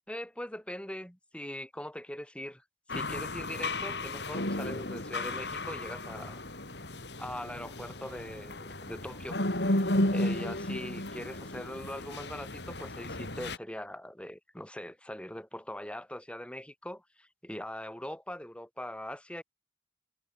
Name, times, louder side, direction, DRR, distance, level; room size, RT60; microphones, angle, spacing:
voice 1, 0.1-2.6 2.9-6.4 7.2-9.4 9.7-19.4, left 1 dB, 5° left, 3.8 m, -41 dB
sound 1, 2.9-13.6, left 1 dB, 75° left, 4.9 m, -34 dB
head